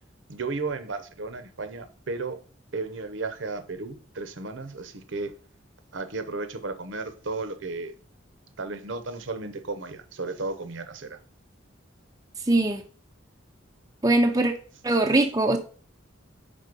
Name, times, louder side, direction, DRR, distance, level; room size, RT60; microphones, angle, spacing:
voice 1, 0.3-2.4 2.7-5.3 5.9-7.9 8.6-11.2, right 3 dB, 70° right, 0.8 m, -34 dB
voice 2, 12.5-12.8 14.0-14.5 14.8-15.6, right 2 dB, 20° right, 0.5 m, -21 dB
5.2 x 3.7 x 5.2 m
head